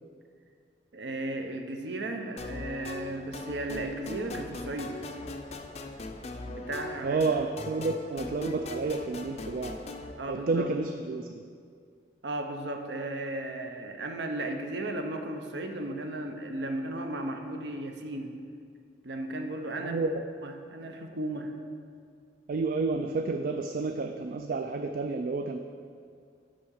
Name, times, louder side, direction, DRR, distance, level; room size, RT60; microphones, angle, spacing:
voice 1, 0.9-5.0 6.5-7.2 10.2-10.7 12.2-18.4 19.0-20.0 20.4-21.5, right 1 dB, 70° right, 5 dB, 0.7 m, -35 dB
sound 1, 2.4-10.1, left 2 dB, 35° left, 0.5 m, -40 dB
voice 2, 7.0-9.8 10.3-11.4 19.8-20.2 22.5-25.6, right 3 dB, 50° right, 6 dB, 0.3 m, -30 dB
6.3 x 5.6 x 6.3 m, 2.2 s
head